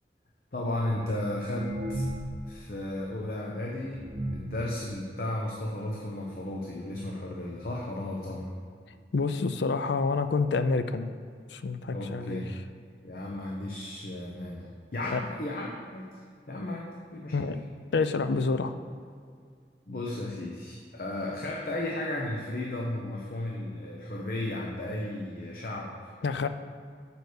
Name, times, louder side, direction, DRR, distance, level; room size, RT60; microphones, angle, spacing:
voice 1, 0.5-2.1 2.4-4.0 4.3-8.5 11.9-12.6 13.0-16.1 16.5-17.5 19.9-26.2, left 1 dB, 55° left, -2 dB, 0.8 m, -34 dB
sound 1, 0.9-2.5 2.8-2.9 3.5-3.6 3.9-4.6 5.3-5.4 5.7-5.8 6.1-6.4 7.2-7.3 7.6-7.7 8.3-8.4 8.7-8.8, right 1 dB, 30° right, 0.7 m, -35 dB
voice 2, 9.1-11.1 11.5-12.4 15.1-15.2 17.3-17.6 17.9-18.7 26.2-26.5, left 4 dB, 75° left, 10 dB, 0.4 m, -27 dB
6.9 x 4.9 x 6.4 m, 2.2 s
head